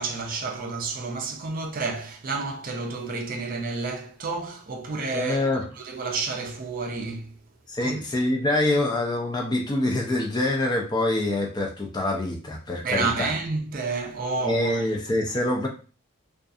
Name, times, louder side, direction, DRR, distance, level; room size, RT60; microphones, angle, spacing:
voice 1, 0.0-7.4 7.8-8.0 12.8-14.8, right 4 dB, 40° right, 0.4 m, -30 dB
voice 2, 5.1-5.6 7.7-13.3 14.4-15.7, left 1 dB, 20° left, 0.4 m, -25 dB
2.6 x 2.3 x 2.3 m
head